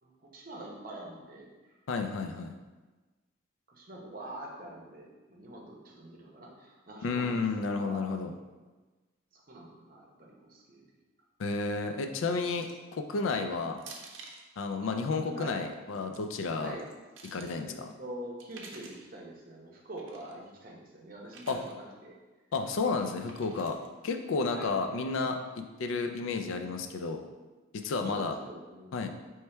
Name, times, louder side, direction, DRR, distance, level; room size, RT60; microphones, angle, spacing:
voice 1, 0.0-1.7 3.7-7.3 7.7-8.1 9.3-10.8 12.3-12.4 14.8-15.8 16.6-16.8 17.6-22.2 22.9-23.1 24.5-24.8 28.0-28.9, right 1 dB, 45° right, -2 dB, 0.8 m, -45 dB
voice 2, 1.9-2.5 7.0-8.3 11.4-13.8 14.6-16.7 17.3-17.9 21.5-21.6 22.5-23.8 24.0-27.2 27.7-28.3 28.9-29.1, left 4 dB, 85° left, 6 dB, 0.4 m, -32 dB
sound 1, 12.5-12.9 13.8-14.5 15.8-16.2 16.8-17.5 18.4-19.1 20.0-20.3 21.3-21.7 23.3-23.9, right 4 dB, 75° right, 0.6 m, -50 dB
4.4 x 3.1 x 3.3 m, 1.2 s
head